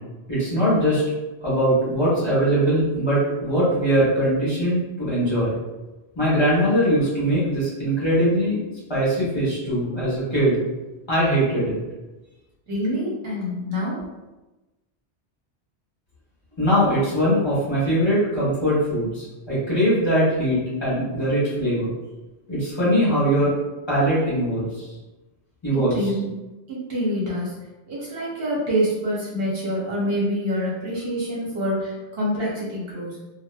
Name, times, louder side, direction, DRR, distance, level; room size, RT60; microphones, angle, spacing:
voice 1, 0.3-1.0 1.4-5.6 6.1-8.6 8.9-10.6 11.1-11.8 16.6-21.9 22.5-23.5 23.9-24.8 25.6-26.0, equal, 25° left, -10 dB, 1.2 m, -21 dB
voice 2, 12.7-14.0 25.7-26.3 26.7-27.5 27.9-33.2, equal, 60° right, -6 dB, 0.9 m, -26 dB
2.9 x 2.2 x 2.2 m, 1.1 s
omnidirectional pair, 1.2 m